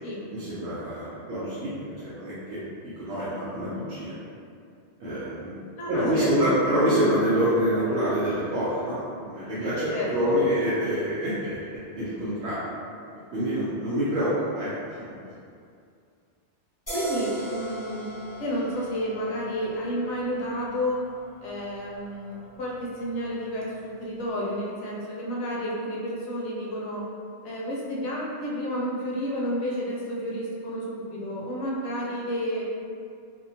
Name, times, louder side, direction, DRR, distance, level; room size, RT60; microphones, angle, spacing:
voice 1, 0.3-4.1 5.0-5.5 5.9-11.5 12.0-12.6 13.3-14.7 15.0-15.1, equal, 75° right, -11 dB, 0.9 m, -26 dB
voice 2, 5.8-6.6 9.9-10.4 16.9-18.1 18.4-21.0 21.4-27.0 27.4-32.6, equal, 90° left, -5 dB, 0.9 m, -31 dB
sound 1, 16.9-24.2, right 2 dB, 20° left, 1.3 m, -40 dB
2.7 x 2.2 x 2.6 m, 2.4 s
omnidirectional pair, 1.1 m